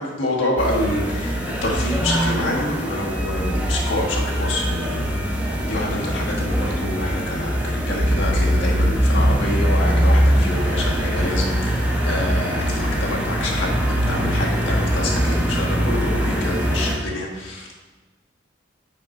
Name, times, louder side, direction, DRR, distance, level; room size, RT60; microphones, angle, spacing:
voice 1, 0.0-5.2 5.6-17.8, left 1 dB, 90° left, -3 dB, 1.5 m, -27 dB
sound 1, 0.6-17.0, equal, 10° right, 1.0 m, -22 dB
5.7 x 5.2 x 4.4 m, 1.2 s
head